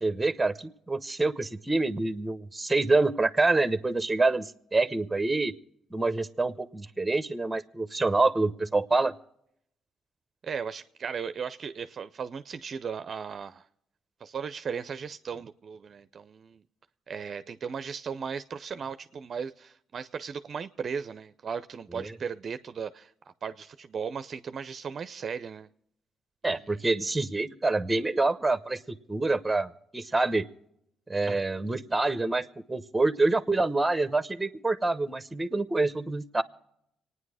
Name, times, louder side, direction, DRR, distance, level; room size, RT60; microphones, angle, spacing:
voice 1, 0.0-5.5 5.9-9.1 22.0-22.1 26.4-28.8 29.1-30.4 31.1-36.4, right 3 dB, 15° right, 0.9 m, -26 dB
voice 2, 10.4-13.7 14.2-16.6 17.1-23.1 23.4-25.7 26.5-26.9, right 6 dB, 50° right, 0.5 m, -36 dB
25.5 x 9.6 x 4.8 m
cardioid pair, 90°, 0 cm